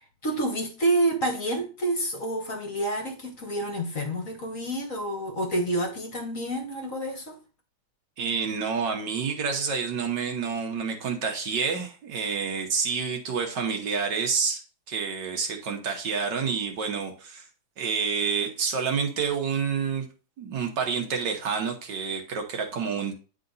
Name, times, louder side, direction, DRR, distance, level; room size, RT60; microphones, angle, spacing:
voice 1, 0.0-7.4, right 1 dB, 45° left, 1.4 m, -28 dB
voice 2, 8.2-17.4 17.8-20.1 20.4-23.1, right 5 dB, 65° right, 1.6 m, -28 dB
9.3 x 3.8 x 3.9 m
omnidirectional pair, 2.2 m